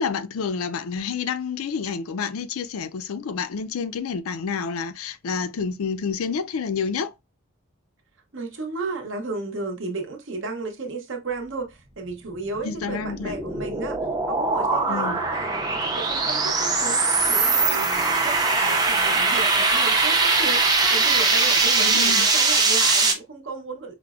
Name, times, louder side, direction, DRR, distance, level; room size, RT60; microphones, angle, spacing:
voice 1, 0.0-7.1 12.6-13.3 14.9-15.2 21.8-22.3, left 5 dB, 85° left, 0.4 m, -29 dB
voice 2, 8.3-14.0 14.3-17.0 17.3-23.9, right 3 dB, 60° right, 0.8 m, -33 dB
sound 1, 12.6-23.1, right 3 dB, 20° right, 0.5 m, -21 dB
5.0 x 2.0 x 2.3 m
head